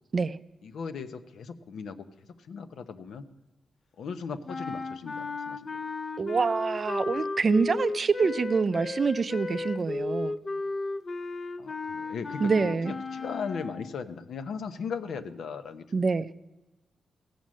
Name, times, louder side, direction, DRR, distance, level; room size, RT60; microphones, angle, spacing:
voice 1, 0.6-3.3 4.0-5.7 11.6-16.0, left 5 dB, 80° left, 10 dB, 0.8 m, -38 dB
sound 1, 4.5-14.0, left 3 dB, 30° left, 0.4 m, -34 dB
voice 2, 6.2-10.4 12.4-12.9 15.9-16.3, right 4 dB, 35° right, 14 dB, 0.4 m, -26 dB
15.5 x 9.1 x 6.3 m, 1.1 s
wide cardioid pair, 165°, 0 cm